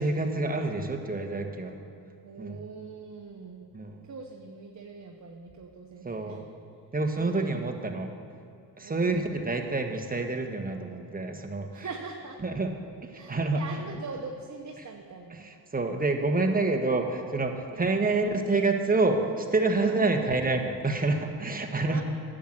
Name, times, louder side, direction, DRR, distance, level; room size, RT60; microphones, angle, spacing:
voice 1, 0.0-1.8 2.4-2.6 3.7-3.9 6.0-6.4 6.9-8.1 8.8-11.9 12.4-12.7 13.3-13.6 15.3-22.0, right 3 dB, 20° right, 3 dB, 1.4 m, -27 dB
voice 2, 2.2-3.7 4.0-6.4 7.1-7.5 8.8-9.3 11.7-12.4 13.1-15.5 17.7-17.9 19.9-20.1 21.8-22.0, right 4 dB, 40° right, 1 dB, 1.1 m, -42 dB
10.0 x 7.6 x 7.9 m, 2.5 s
cardioid pair, 70°, 43 cm